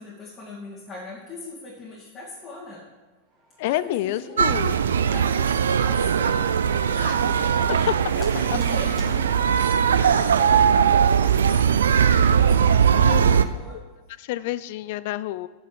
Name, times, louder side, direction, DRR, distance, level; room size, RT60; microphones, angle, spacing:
voice 1, 0.0-2.9 3.6-4.4 4.8-10.7 11.1-13.8, left 2 dB, 25° left, -6 dB, 2.3 m, -42 dB
Organ, 3.4-9.3, right 3 dB, 25° right, 2.3 m, -43 dB
voice 2, 3.6-4.7 7.0-7.2 13.0-13.2 14.2-15.5, left 15 dB, 50° left, 16 dB, 0.4 m, -28 dB
sound 1, 4.4-13.5, right 7 dB, 65° right, 0.5 m, -20 dB
7.8 x 6.9 x 7.7 m, 1.3 s
figure-of-eight pair, 90°, 0 cm